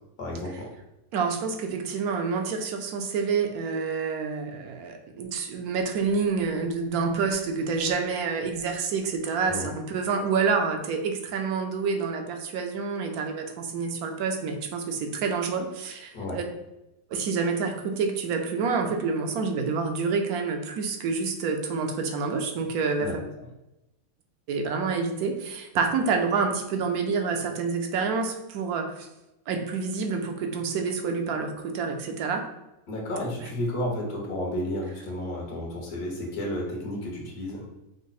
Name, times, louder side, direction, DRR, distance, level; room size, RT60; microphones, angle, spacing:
voice 1, 0.2-0.7 9.5-9.7 16.1-16.4 23.0-23.2 32.9-37.6, left 1 dB, 80° left, -1 dB, 1.6 m, -32 dB
voice 2, 1.1-16.4 17.1-23.1 24.5-29.1 29.5-32.4, right 5 dB, 80° right, 4 dB, 1.1 m, -28 dB
5.1 x 2.0 x 4.0 m, 0.93 s
omnidirectional pair, 1.6 m